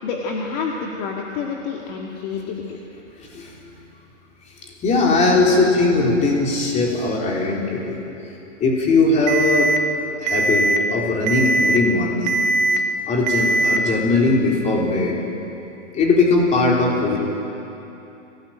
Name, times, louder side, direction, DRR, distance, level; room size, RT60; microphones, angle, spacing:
voice 1, 0.0-2.8, left 5 dB, 35° left, 0 dB, 2.1 m, -28 dB
voice 2, 3.2-3.6 4.6-8.0 8.6-9.7 10.2-12.4 13.1-15.2 15.9-17.2, left 3 dB, 20° left, -1 dB, 3.9 m, -19 dB
Alarm, 9.3-9.8 10.3-10.8 11.3-11.8 12.3-12.8 13.3-13.8, right 2 dB, 35° right, 1.6 m, -19 dB
25.0 x 18.0 x 8.9 m, 3.0 s
hypercardioid pair, 155°, 37 cm